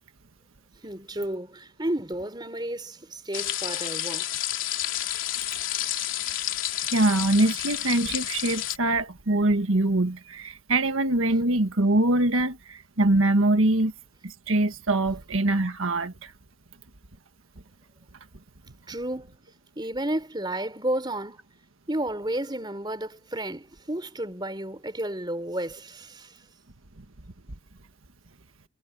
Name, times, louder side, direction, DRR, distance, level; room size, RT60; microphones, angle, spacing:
voice 1, 0.8-4.3 11.3-11.4 18.9-19.4 19.8-21.4 21.9-26.4, right 1 dB, 20° right, 4.0 m, -32 dB
sound 1, 3.3-8.8, left 12 dB, 70° left, 3.4 m, -30 dB
voice 2, 6.9-13.9 14.2-16.3, right 2 dB, 85° right, 1.6 m, -23 dB
head